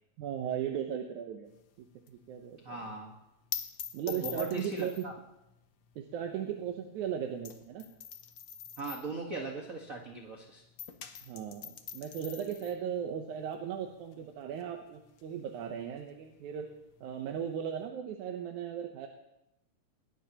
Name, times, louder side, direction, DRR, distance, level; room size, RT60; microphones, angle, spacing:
voice 1, 0.2-1.5 1.8-2.9 3.9-5.1 6.0-7.9 11.2-16.7 17.0-19.1, right 9 dB, 80° right, 3 dB, 2.5 m, -37 dB
sound 1, 1.5-10.4 10.6-17.9, left 9 dB, 75° left, 1.0 m, -46 dB
voice 2, 2.6-3.1 4.1-5.1 8.8-10.6, right 2 dB, 35° right, 0 dB, 1.4 m, -39 dB
20.0 x 20.0 x 3.0 m, 0.87 s
omnidirectional pair, 3.4 m